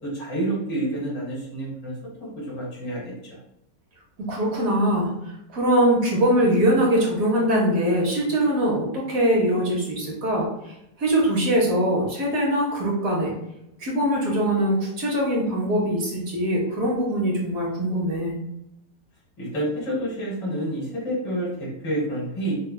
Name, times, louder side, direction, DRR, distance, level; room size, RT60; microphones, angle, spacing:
voice 1, 0.0-3.4 19.4-22.6, right 1 dB, 85° left, -6 dB, 2.4 m, -29 dB
voice 2, 4.2-13.3 13.8-18.4, right 1 dB, 60° right, -3 dB, 1.2 m, -22 dB
5.3 x 2.2 x 2.2 m, 0.83 s
omnidirectional pair, 1.9 m